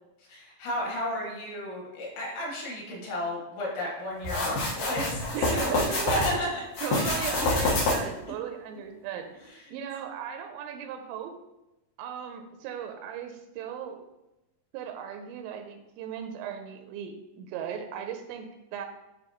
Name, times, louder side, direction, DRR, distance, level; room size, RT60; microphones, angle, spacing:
voice 1, 0.3-5.2 5.5-5.7 6.1-6.6 7.0-7.5 9.5-9.6, left 1 dB, 80° left, -3 dB, 4.0 m, -33 dB
sound 1, 4.2-6.3 6.7-8.2, left 2 dB, 60° left, 2.6 m, -27 dB
voice 2, 5.3-6.4 6.8-9.3 9.7-11.3 12.0-14.0 14.7-18.9, right 8 dB, 85° right, 5 dB, 2.9 m, -36 dB
9.9 x 3.5 x 3.0 m, 0.97 s
omnidirectional pair, 5.1 m